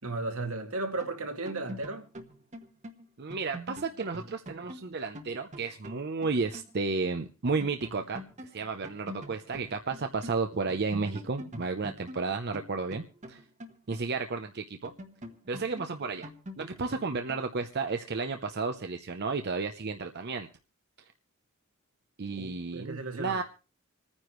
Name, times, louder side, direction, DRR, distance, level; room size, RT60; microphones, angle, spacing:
voice 1, 0.0-2.0 22.4-23.4, right 2 dB, 80° right, 2.2 m, -35 dB
sound 1, 1.0-6.8 7.0-7.1 7.5-10.4 10.7-14.4 14.8-17.6, equal, 35° right, 1.2 m, -45 dB
voice 2, 3.2-13.4 13.9-14.9 15.5-16.3 16.6-20.5 22.2-23.4, right 4 dB, 50° right, 0.7 m, -32 dB
26.5 x 9.7 x 3.1 m
head